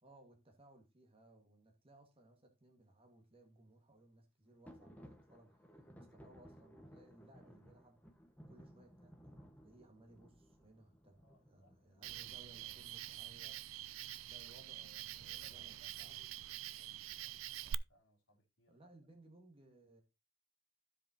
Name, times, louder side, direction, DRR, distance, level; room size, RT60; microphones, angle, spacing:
voice 1, 0.0-8.0 8.5-13.6 14.3-16.2 18.7-20.0, right 1 dB, 30° right, 1.7 m, -63 dB
sound 1, 4.6-13.2, equal, 10° left, 1.3 m, -60 dB
voice 2, 11.2-12.4 15.2-17.4 17.6-18.8, equal, 80° left, 3.3 m, -71 dB
Cricket, 12.0-17.7, right 12 dB, 80° right, 0.4 m, -46 dB
15.5 x 5.1 x 2.8 m
head